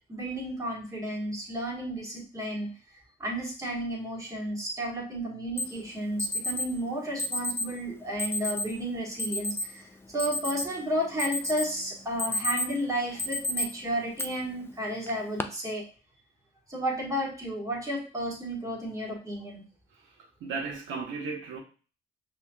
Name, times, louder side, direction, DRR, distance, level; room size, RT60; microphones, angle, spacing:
voice 1, 0.1-2.7 3.2-15.8 16.7-19.6, equal, 15° right, 1.5 m, -32 dB
Alarm, 5.6-5.7 6.2-6.7 7.2-7.7 8.2-8.7 9.2-9.7 10.0-10.8 11.2-11.7 12.0-12.8 13.2-13.6 14.2-14.3 15.1-15.4, left 1 dB, 10° left, 0.4 m, -30 dB
voice 2, 20.4-21.6, right 4 dB, 75° right, 0.8 m, -34 dB
5.3 x 3.0 x 2.3 m
cardioid pair, 90°, 20 cm